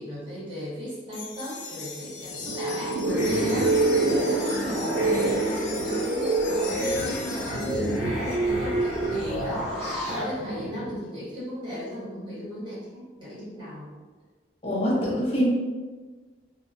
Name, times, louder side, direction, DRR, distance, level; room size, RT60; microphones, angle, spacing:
voice 1, 0.0-13.9, equal, 25° right, -10 dB, 1.1 m, -36 dB
sound 1, 1.1-8.0, left 5 dB, 70° left, 0.4 m, -39 dB
sound 2, 2.2-11.0, right 2 dB, 65° right, 0.4 m, -28 dB
sound 3, 3.1-10.2, right 1 dB, 50° left, 1.1 m, -29 dB
voice 2, 14.6-15.5, equal, 30° left, -5 dB, 0.7 m, -24 dB
2.7 x 2.1 x 2.4 m, 1.3 s
head